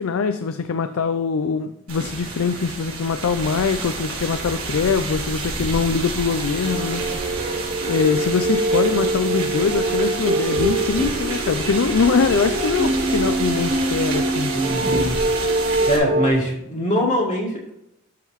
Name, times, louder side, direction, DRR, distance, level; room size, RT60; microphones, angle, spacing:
voice 1, 0.0-7.3 7.9-14.6, left 5 dB, 70° left, 9 dB, 0.4 m, -23 dB
sound 1, 1.9-16.0, right 3 dB, 85° right, 3.0 m, -29 dB
sound 2, 6.6-16.3, right 2 dB, 50° right, 0.9 m, -24 dB
voice 2, 14.5-15.2 15.8-17.7, equal, 35° left, -3 dB, 1.7 m, -22 dB
12.5 x 5.7 x 3.1 m, 0.83 s
head